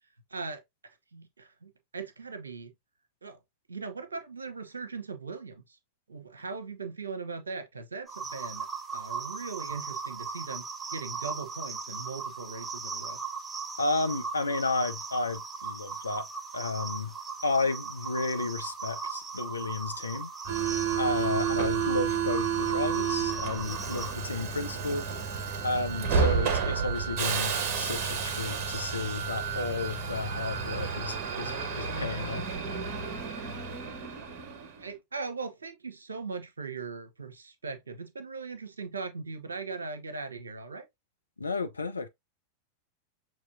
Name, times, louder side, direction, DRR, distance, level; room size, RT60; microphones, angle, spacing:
voice 1, 0.3-0.6 1.1-2.7 3.2-3.4 3.7-5.8 6.1-8.7 8.9-13.2 34.6-40.9, right 4 dB, 75° right, 0.8 m, -39 dB
sound 1, 8.1-24.1, right 5 dB, 15° right, 0.6 m, -38 dB
voice 2, 13.8-16.3 16.5-17.1 17.4-20.3 21.0-25.0 25.6-32.5 41.4-42.1, left 3 dB, 80° left, 0.6 m, -32 dB
Subway metro underground, 20.5-34.8, right 6 dB, 40° right, 1.3 m, -31 dB
6.2 x 3.0 x 2.6 m
figure-of-eight pair, 90°, 0 cm